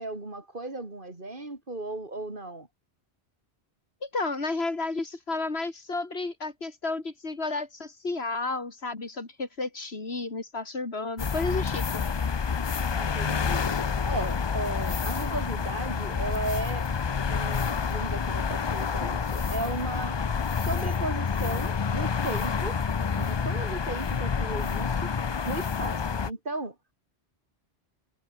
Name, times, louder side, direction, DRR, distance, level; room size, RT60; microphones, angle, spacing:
voice 1, 0.0-2.7 12.9-13.7 14.0-16.9 17.3-20.2 20.6-22.8 23.2-25.1 25.5-26.8, right 2 dB, 55° right, 3.5 m, -35 dB
voice 2, 4.0-12.0, left 3 dB, 85° left, 3.3 m, -32 dB
sound 1, 11.2-26.3, left 6 dB, 35° left, 0.5 m, -28 dB
omnidirectional pair, 1.0 m